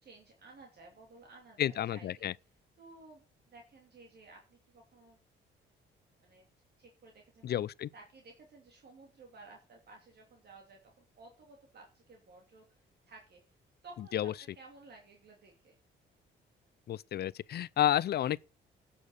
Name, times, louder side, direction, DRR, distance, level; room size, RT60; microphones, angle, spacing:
voice 1, 0.0-2.3 2.8-5.2 6.2-6.5 6.8-7.5 7.9-13.4 13.8-15.8, right 3 dB, 55° right, 2.9 m, -55 dB
voice 2, 1.6-2.3 7.4-7.9 14.1-14.3 16.9-18.4, left 11 dB, 55° left, 0.5 m, -31 dB
11.0 x 7.4 x 6.6 m
cardioid pair, 90°, 20 cm